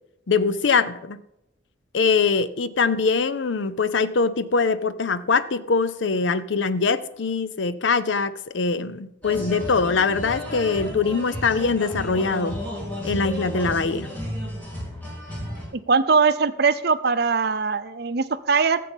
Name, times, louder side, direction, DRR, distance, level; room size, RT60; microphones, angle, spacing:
voice 1, 0.3-1.2 1.9-12.6 13.0-14.1, left 4 dB, 75° left, 14 dB, 0.6 m, -23 dB
sound 1, 9.2-15.6, left 1 dB, 10° left, 3.3 m, -33 dB
voice 2, 15.9-18.8, right 5 dB, 55° right, 12 dB, 0.6 m, -21 dB
14.0 x 7.6 x 5.4 m, 0.84 s
head